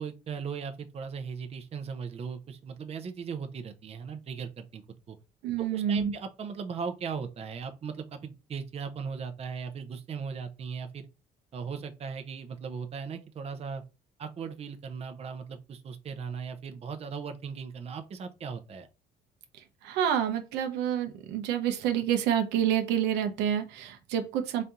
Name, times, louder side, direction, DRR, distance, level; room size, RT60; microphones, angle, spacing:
voice 1, 0.0-4.8 5.1-5.2 5.6-11.1 11.5-13.8 14.2-18.9, right 6 dB, 40° right, 0.7 m, -38 dB
voice 2, 5.4-6.1 19.8-24.6, right 9 dB, 90° right, 0.8 m, -28 dB
4.2 x 2.7 x 3.6 m
cardioid pair, 110°, 17 cm